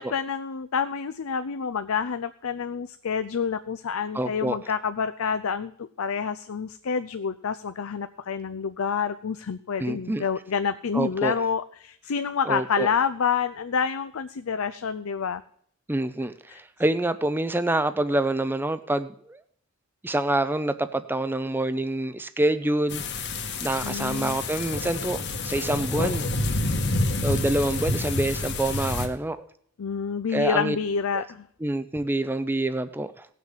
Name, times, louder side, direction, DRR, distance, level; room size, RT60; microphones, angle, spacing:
voice 1, 0.0-15.4 16.5-16.6 23.8-24.4 29.8-31.5, left 6 dB, 80° left, 10 dB, 0.5 m, -28 dB
voice 2, 4.1-4.6 9.8-10.3 10.9-11.4 12.5-12.9 15.9-19.4 20.0-23.0 23.6-26.3 27.2-29.5 30.3-30.8 31.1-31.2 31.6-33.3, right 1 dB, 10° right, 11 dB, 0.5 m, -26 dB
sound 1, 22.9-29.1, left 2 dB, 55° left, 1.4 m, -28 dB
17.5 x 6.2 x 7.2 m, 0.64 s
head